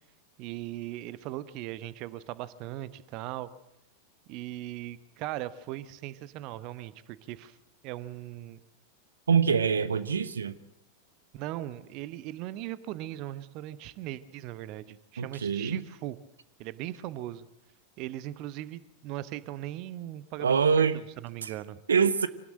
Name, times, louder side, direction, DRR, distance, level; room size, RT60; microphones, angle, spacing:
voice 1, 0.4-3.5 4.3-7.6 7.8-8.6 9.5-9.8 11.3-16.2 16.6-17.5 18.0-21.8, right 14 dB, 40° right, 16 dB, 1.1 m, -39 dB
voice 2, 9.3-10.6 15.2-15.8 20.4-21.0 21.4-21.5 21.9-22.3, right 6 dB, 70° right, 15 dB, 1.1 m, -25 dB
25.5 x 18.5 x 7.6 m, 0.84 s
figure-of-eight pair, 90°, 0 cm